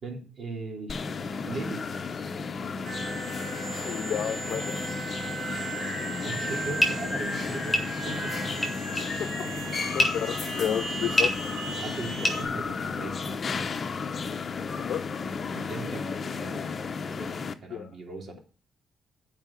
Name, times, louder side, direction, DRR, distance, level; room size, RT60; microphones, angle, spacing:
voice 1, 0.0-1.0 1.4-2.1 6.2-8.7 9.4-9.8 11.8-13.4 15.5-16.6 17.2-18.4, right 3 dB, 50° right, 3.0 m, -39 dB
sound 1, 0.9-17.5, left 5 dB, 40° left, 0.9 m, -33 dB
sound 2, 2.8-12.4, right 3 dB, 70° right, 3.6 m, -37 dB
voice 2, 3.9-4.8 9.2-9.3 9.9-11.3 14.8-15.1 17.7-17.9, left 9 dB, 70° left, 0.7 m, -31 dB
sound 3, 6.8-13.2, left 1 dB, 15° left, 3.8 m, -29 dB
8.9 x 5.0 x 7.4 m
cardioid pair, 105°, 0 cm